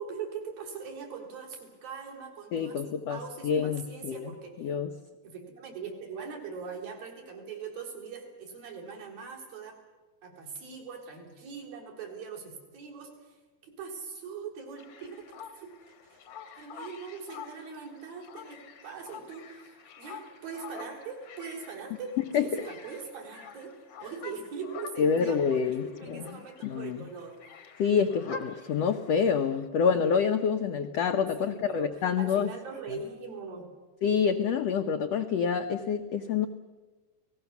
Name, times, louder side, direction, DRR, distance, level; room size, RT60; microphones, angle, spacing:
voice 1, 0.0-4.7 5.2-9.8 10.2-15.3 15.5-27.4 31.4-33.7, right 5 dB, 75° right, 0 dB, 5.7 m, -42 dB
voice 2, 2.5-4.2 4.6-4.9 22.3-22.6 25.0-26.3 26.6-27.0 27.8-32.5 34.0-36.5, left 6 dB, 80° left, 6 dB, 1.4 m, -27 dB
sound 1, 14.8-29.7, left 6 dB, 55° left, 1.3 m, -48 dB
29.0 x 19.0 x 7.1 m, 1.2 s
omnidirectional pair, 4.1 m